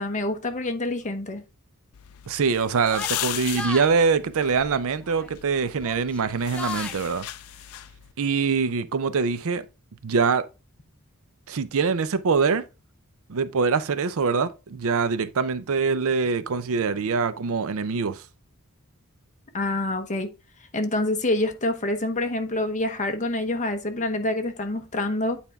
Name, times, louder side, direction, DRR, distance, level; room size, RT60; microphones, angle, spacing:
voice 1, 0.0-1.4 19.5-20.3 20.7-25.4, left 2 dB, 35° left, 1.0 m, -26 dB
sound 1, 1.9-8.1, left 14 dB, 70° left, 0.4 m, -37 dB
voice 2, 2.3-7.3 8.2-9.6 10.0-10.4 11.5-12.6 13.3-18.2, right 5 dB, 65° right, 0.5 m, -24 dB
Yell, 2.9-3.9 5.0-5.4 5.8-7.0, left 2 dB, 5° left, 0.5 m, -35 dB
9.0 x 4.3 x 3.5 m
head